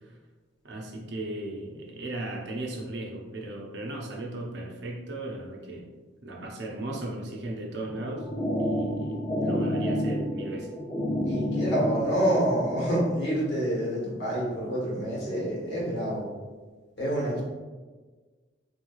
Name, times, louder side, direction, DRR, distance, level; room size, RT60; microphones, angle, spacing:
voice 1, 0.6-5.9 6.2-8.3 8.6-10.7, right 2 dB, 65° right, -1 dB, 0.6 m, -36 dB
sound 1, 7.9-12.9, equal, 15° left, 0.4 m, -29 dB
voice 2, 11.2-16.3 17.0-17.4, right 1 dB, 70° left, -6 dB, 1.2 m, -27 dB
3.3 x 3.0 x 2.3 m, 1.4 s
head